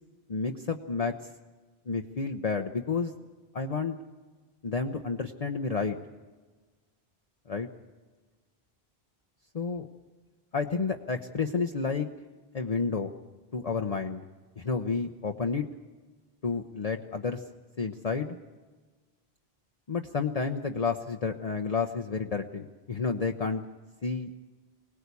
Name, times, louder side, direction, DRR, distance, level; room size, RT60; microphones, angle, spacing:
voice 1, 0.3-1.1 1.9-3.1 3.5-4.0 4.6-6.0 7.5-7.7 9.5-9.9 10.5-12.1 12.5-13.1 13.5-14.2 14.6-15.7 16.4-17.4 17.8-18.4 19.9-23.6 24.0-24.3, left 4 dB, 40° left, 4 dB, 0.9 m, -30 dB
24.0 x 18.5 x 8.3 m, 1.3 s
omnidirectional pair, 1.1 m